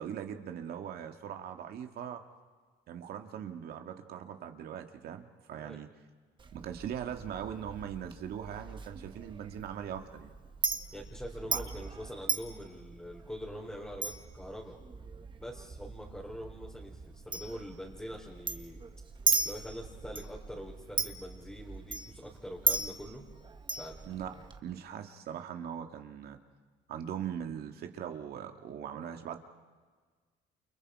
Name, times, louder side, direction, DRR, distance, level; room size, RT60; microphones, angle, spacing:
voice 1, 0.0-2.2 2.9-5.9 6.5-10.3 11.4-11.6 24.1-24.3 24.6-26.4 26.9-29.4, right 9 dB, 65° right, 5 dB, 2.3 m, -40 dB
Chink clink, 6.4-24.6, right 4 dB, 30° right, 1.6 m, -38 dB
voice 2, 10.9-14.8 15.4-18.8 19.4-23.2 23.7-24.0, equal, 5° left, -3 dB, 3.7 m, -44 dB
29.5 x 29.0 x 5.0 m, 1.5 s
cardioid pair, 110°, 17 cm